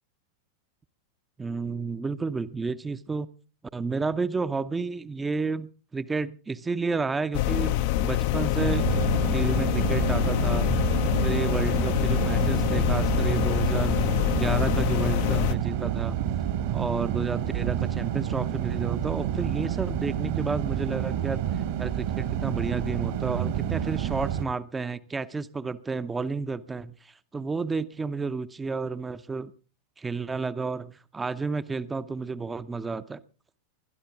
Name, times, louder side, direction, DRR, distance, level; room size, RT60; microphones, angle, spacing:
voice 1, 1.4-3.3 3.7-8.9 9.3-14.0 14.3-16.2 16.7-29.5 30.0-33.2, right 4 dB, 15° right, 13 dB, 0.7 m, -31 dB
sound 1, 7.3-15.5, left 13 dB, 50° left, 0.6 m, -25 dB
sound 2, 8.5-24.4, right 10 dB, 50° right, 1.5 m, -29 dB
22.0 x 12.0 x 3.6 m, 0.35 s
figure-of-eight pair, 90°, 0 cm